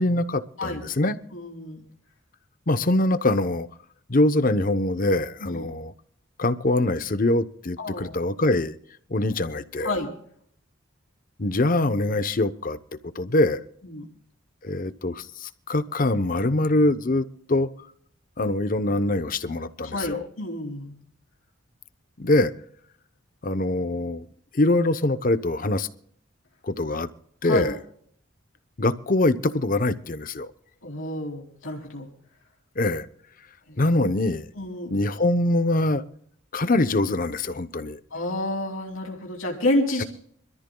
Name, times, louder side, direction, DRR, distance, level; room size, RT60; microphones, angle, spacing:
voice 1, 0.0-1.2 2.7-3.7 4.1-5.9 6.4-8.7 9.1-10.0 11.4-12.8 13.1-13.6 14.6-17.7 18.4-20.3 22.2-22.5 23.4-24.3 24.5-25.9 26.6-27.1 27.4-27.8 28.8-30.5 32.8-33.1 33.8-34.5 34.9-36.0 36.5-38.0, left 2 dB, 45° left, 0.8 m, -23 dB
voice 2, 1.3-1.8 5.4-5.7 7.8-8.1 9.8-10.1 13.8-14.1 19.9-21.0 27.4-27.7 30.8-32.1 33.7-33.8 34.5-34.9 38.1-40.0, left 1 dB, 85° left, 3.0 m, -29 dB
26.0 x 14.0 x 2.3 m
head